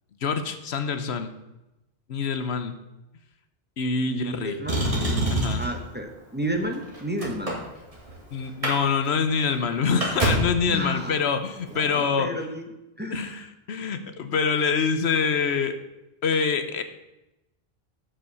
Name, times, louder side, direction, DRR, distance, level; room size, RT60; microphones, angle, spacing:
voice 1, 0.2-1.3 2.1-2.7 3.8-4.6 5.3-5.6 8.3-12.3 13.1-15.8 16.2-16.8, left 5 dB, 90° left, 9 dB, 1.2 m, -25 dB
voice 2, 4.1-4.9 5.6-7.6 10.7-11.2 11.7-12.7 13.0-13.5, equal, 10° right, 3 dB, 1.2 m, -31 dB
Motor vehicle (road), 4.7-5.8 6.6-8.1 8.4-8.8 9.0-9.1 9.5-10.6 11.7-11.8, right 1 dB, 35° right, 2.7 m, -26 dB
11.5 x 5.5 x 6.9 m, 0.95 s
omnidirectional pair, 1.1 m